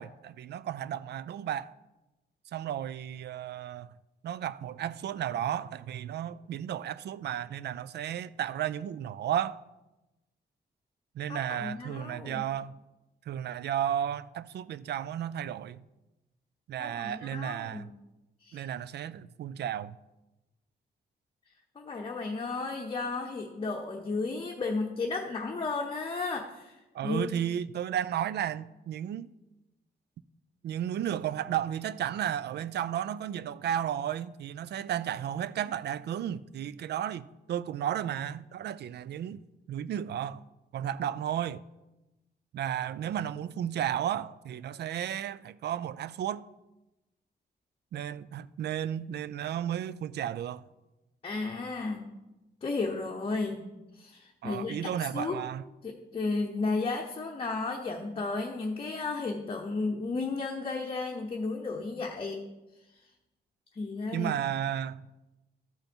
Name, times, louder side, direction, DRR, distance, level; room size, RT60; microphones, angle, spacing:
voice 1, 0.0-1.7 2.5-3.9 4.2-9.6 11.2-12.8 13.3-15.8 16.7-17.9 18.5-20.0 26.9-29.3 30.6-39.4 39.7-40.4 40.7-41.6 42.5-46.4 47.9-50.6 54.4-55.6 64.1-65.1, right 10 dB, 75° right, 0.4 m, -33 dB
voice 2, 11.3-12.5 16.8-17.9 18.4-18.7 21.8-27.3 51.2-52.1 52.6-53.6 53.9-55.4 55.8-62.4 63.7-64.3, left 3 dB, 30° left, 0.8 m, -33 dB
13.0 x 5.5 x 4.4 m
wide cardioid pair, 145°, 17 cm